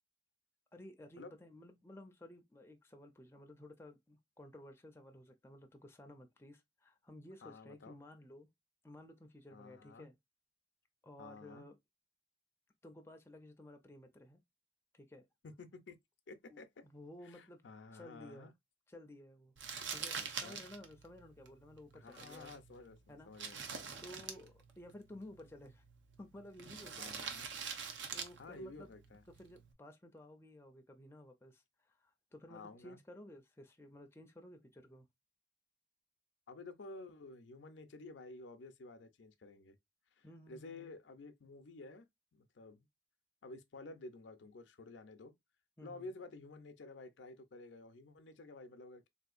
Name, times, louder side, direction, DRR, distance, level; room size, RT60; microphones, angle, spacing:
voice 1, 0.7-8.5 8.8-10.2 11.0-11.8 12.8-14.4 14.9-15.3 16.5-17.6 17.9-18.5 18.9-19.5 19.9-22.6 23.1-23.7 24.0-25.8 26.2-27.3 28.1-28.9 29.3-35.1 40.2-40.9 45.8-46.1, left 1 dB, 15° left, 0.4 m, -55 dB
voice 2, 7.4-8.0 9.5-10.1 11.2-11.7 15.4-16.0 16.3-16.8 17.2-18.5 20.4-20.6 21.9-24.0 27.0-27.5 28.4-29.2 32.5-33.0 36.5-39.7 40.2-42.9 43.4-45.3 45.8-49.1, left 3 dB, 80° left, 0.5 m, -52 dB
Crumpling crinkling, 19.6-29.7, right 6 dB, 80° right, 0.6 m, -46 dB
3.7 x 2.7 x 2.4 m
head